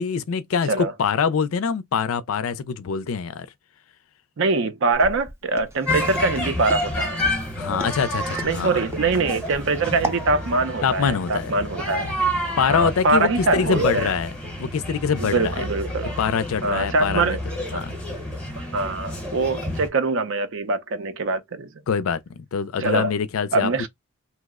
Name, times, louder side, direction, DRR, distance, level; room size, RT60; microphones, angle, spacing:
voice 1, 0.0-3.5 7.6-8.8 10.8-11.5 12.6-14.3 14.6-15.7 16.2-17.4 17.7-17.9 21.9-23.9, left 6 dB, 70° left, 0.4 m, -24 dB
voice 2, 4.4-7.2 8.4-12.1 12.7-14.1 15.2-16.2 16.6-17.4 17.7-17.9 18.6-21.7 22.8-23.1 23.5-23.9, right 3 dB, 60° right, 0.5 m, -23 dB
Walk footsteps, 4.9-10.3, right 1 dB, 10° right, 0.4 m, -36 dB
sound 1, 5.9-19.9, equal, 5° left, 0.8 m, -29 dB
2.9 x 2.0 x 3.5 m
head